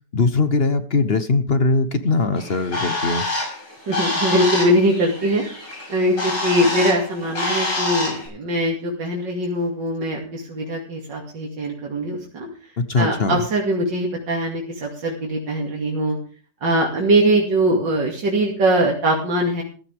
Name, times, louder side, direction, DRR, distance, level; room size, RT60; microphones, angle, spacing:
voice 1, 0.1-3.2 12.8-13.4, left 3 dB, 45° left, 11 dB, 0.9 m, -20 dB
Bird, 2.4-8.3, left 2 dB, 75° left, 6.8 m, -26 dB
voice 2, 3.9-5.4 5.9-12.5 13.0-16.2 16.6-19.6, right 1 dB, 80° right, -1 dB, 3.3 m, -21 dB
15.5 x 13.5 x 3.6 m, 0.38 s
omnidirectional pair, 1.9 m